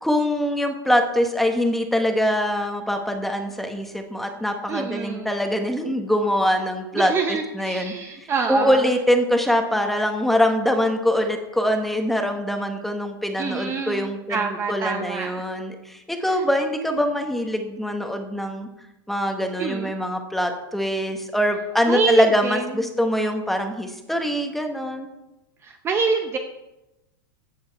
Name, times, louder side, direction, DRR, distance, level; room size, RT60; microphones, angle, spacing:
voice 1, 0.0-7.9 8.2-18.7 19.1-25.1, equal, ahead, 4 dB, 1.3 m, -23 dB
voice 2, 4.7-5.3 6.9-8.9 13.4-15.5 16.3-16.4 19.6-19.9 21.9-22.7 25.6-26.4, right 5 dB, 20° right, 5 dB, 0.8 m, -26 dB
14.5 x 8.0 x 4.7 m, 0.94 s
supercardioid pair, 150°, 12 cm